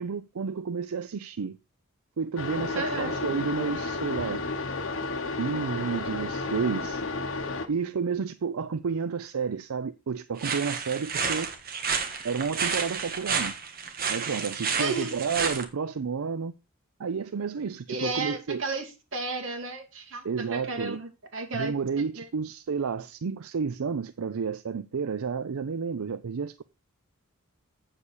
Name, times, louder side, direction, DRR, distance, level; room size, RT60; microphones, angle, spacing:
voice 1, 0.0-1.6 2.2-4.4 5.4-7.0 7.7-11.5 12.2-13.5 14.1-16.5 17.0-18.6 20.2-21.0 21.5-26.6, right 5 dB, 85° right, 0.5 m, -31 dB
sound 1, 2.4-7.7, left 3 dB, 65° left, 1.3 m, -32 dB
voice 2, 2.7-3.1 14.8-15.2 17.9-21.7 22.1-22.3, right 3 dB, 60° right, 2.5 m, -33 dB
sound 2, 10.4-15.6, right 6 dB, 45° right, 1.6 m, -30 dB
8.2 x 7.4 x 4.8 m
head